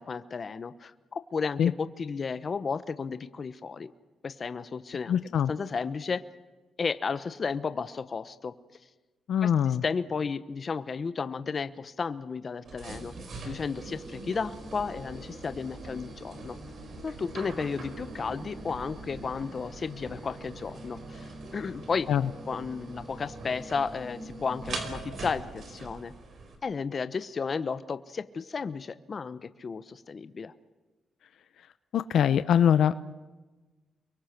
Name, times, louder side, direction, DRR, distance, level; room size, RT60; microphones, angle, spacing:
voice 1, 0.0-3.9 4.2-6.2 6.8-8.5 9.4-13.1 13.4-16.5 17.0-22.1 22.5-26.1 26.6-30.5, left 5 dB, 40° left, 11 dB, 1.1 m, -33 dB
voice 2, 5.1-5.5 9.3-9.8 22.1-22.2 31.9-32.9, left 9 dB, 75° left, 12 dB, 0.9 m, -23 dB
sound 1, 12.6-26.6, right 2 dB, 55° right, 4.8 m, -42 dB
30.0 x 23.0 x 6.1 m, 1.2 s
cardioid pair, 110°, 0 cm